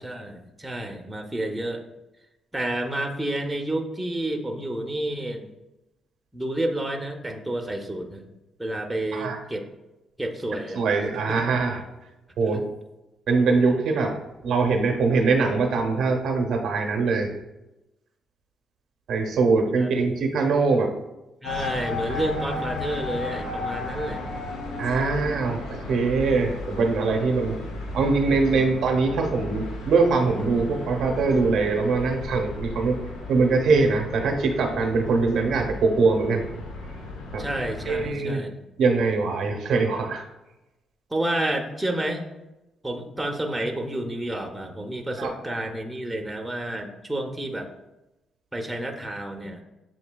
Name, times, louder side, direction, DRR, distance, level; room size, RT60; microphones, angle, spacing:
voice 1, 0.0-1.8 2.5-5.5 6.3-8.3 8.6-9.7 10.2-10.8 11.3-11.4 12.4-12.6 19.8-19.9 21.4-24.3 28.3-28.6 37.4-38.6 41.1-42.2 42.8-47.7 48.5-49.6, right 1 dB, 10° right, 3 dB, 0.6 m, -30 dB
voice 2, 10.7-11.8 12.4-12.6 13.3-14.2 14.4-17.3 19.1-20.9 22.1-22.2 24.8-27.6 27.9-33.0 33.3-36.4 37.3-37.4 37.9-38.4 38.8-40.2 45.2-45.3, right 4 dB, 70° right, 3 dB, 0.7 m, -22 dB
sound 1, 21.4-38.1, left 3 dB, 85° left, 0.6 m, -35 dB
7.3 x 2.7 x 2.2 m, 0.99 s
cardioid pair, 90°, 0 cm